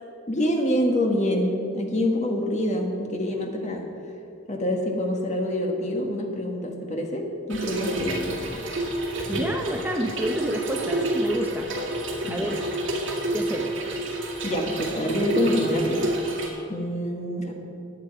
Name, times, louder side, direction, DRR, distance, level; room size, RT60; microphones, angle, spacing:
voice 1, 0.3-3.9 4.5-8.3 12.2-12.5 14.4-16.1 16.7-17.5, left 1 dB, 35° left, 2 dB, 1.6 m, -26 dB
Trickle dribble / Fill (with liquid), 7.5-16.5, right 1 dB, 65° right, 2.1 m, -29 dB
voice 2, 9.3-11.7 12.3-12.6 13.3-13.8, equal, 10° right, 2 dB, 0.7 m, -29 dB
15.5 x 9.6 x 4.7 m, 2.7 s
head